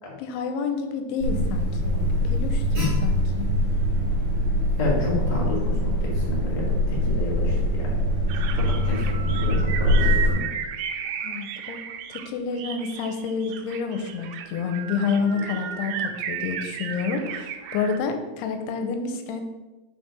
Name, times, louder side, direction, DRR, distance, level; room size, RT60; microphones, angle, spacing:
voice 1, 0.2-2.0 2.2-3.5 11.2-11.8 12.1-19.4, left 5 dB, 85° left, 7 dB, 2.7 m, -29 dB
Alarm, 1.2-10.3, equal, 35° right, 3.4 m, -23 dB
voice 2, 4.8-7.9 8.5-10.5, left 4 dB, 45° left, -4 dB, 0.5 m, -30 dB
sound 1, 8.3-12.3 12.6-18.0, right 8 dB, 90° right, 2.7 m, -33 dB
6.1 x 5.3 x 5.2 m, 1.1 s
omnidirectional pair, 4.6 m